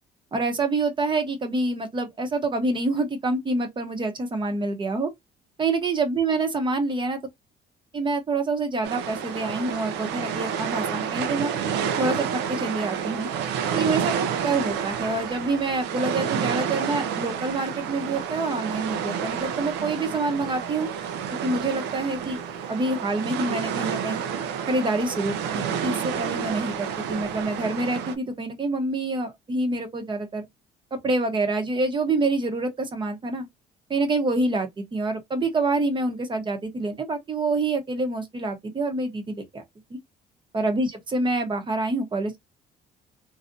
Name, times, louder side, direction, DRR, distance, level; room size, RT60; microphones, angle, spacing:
voice 1, 0.3-5.1 5.6-7.2 7.9-11.5 12.0-13.3 13.7-20.9 21.4-22.4 22.7-24.2 24.7-30.5 30.9-33.5 33.9-39.6 39.9-40.0 40.5-42.4, right 2 dB, 30° right, 0.9 m, -27 dB
sound 1, 8.8-28.2, right 8 dB, 85° right, 0.6 m, -29 dB
3.2 x 2.6 x 2.6 m
cardioid pair, 110°, 17 cm